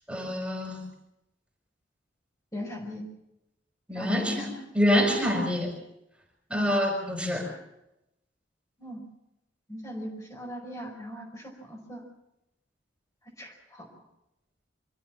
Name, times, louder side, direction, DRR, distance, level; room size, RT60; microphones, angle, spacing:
voice 1, 0.1-0.8 3.9-5.7 6.5-7.5, equal, 5° right, 1 dB, 5.3 m, -26 dB
voice 2, 2.5-3.0 3.9-4.6 6.5-6.7 8.8-9.0 9.7-12.0 13.4-13.8, left 1 dB, 15° left, -1 dB, 5.0 m, -38 dB
26.5 x 14.5 x 7.4 m, 0.87 s
head